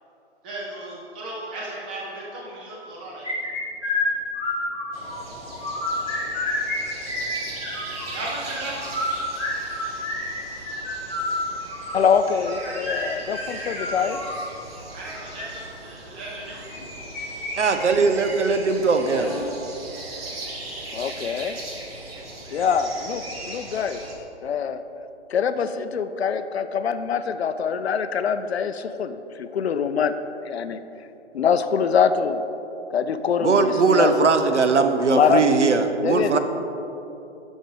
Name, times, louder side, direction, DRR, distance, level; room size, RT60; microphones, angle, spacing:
voice 1, 0.4-3.3 8.1-8.8 14.9-16.6, right 2 dB, 10° right, -5 dB, 0.4 m, -35 dB
sound 1, 3.2-5.1 5.5-6.8 7.0-8.1 8.7-14.4 15.1-15.4 16.7-17.5 17.8-17.9 18.3-18.4 19.0-19.4, left 2 dB, 5° left, 1.8 m, -29 dB
sound 2, 4.9-24.1, right 2 dB, 55° right, 1.5 m, -38 dB
voice 2, 11.9-14.2 20.9-21.6 22.5-24.0 24.4-24.8 25.3-30.1 30.5-30.8 31.3-32.4 32.9-34.3 35.1-35.4 36.0-36.4, left 6 dB, 65° left, 11 dB, 0.5 m, -24 dB
voice 3, 17.6-19.3 33.4-36.4, right 4 dB, 80° right, 7 dB, 0.7 m, -20 dB
6.5 x 6.2 x 4.7 m, 2.9 s
figure-of-eight pair, 140°, 35 cm